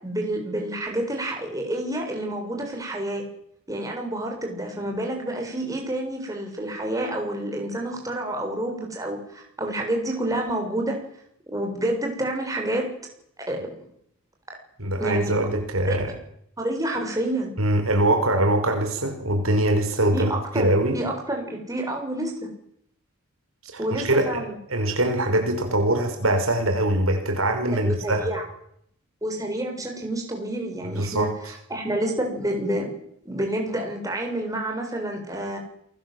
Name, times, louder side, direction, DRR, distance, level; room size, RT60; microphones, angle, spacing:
voice 1, 0.0-3.2 3.7-11.0 11.5-12.9 13.4-13.9 15.0-15.3 15.9-16.0 16.6-17.5 20.1-22.5 23.8-24.6 27.8-28.4 29.2-32.9 33.2-35.6, right 1 dB, 15° right, 1 dB, 7.2 m, -29 dB
voice 2, 14.8-16.1 17.6-21.0 23.7-24.4 24.7-28.3 30.8-31.3, right 1 dB, 75° right, 5 dB, 5.3 m, -23 dB
28.5 x 20.0 x 7.9 m, 0.71 s
head